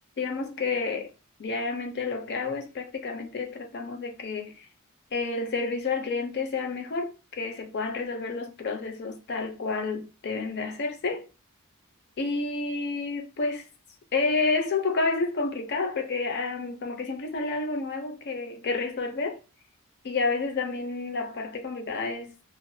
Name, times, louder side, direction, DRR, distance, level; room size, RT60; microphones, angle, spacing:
voice 1, 0.2-1.1 1.4-4.7 5.1-11.3 12.2-13.7 14.1-19.4 20.0-22.4, left 3 dB, 50° left, 0.5 m, -30 dB
2.4 x 2.2 x 2.6 m
head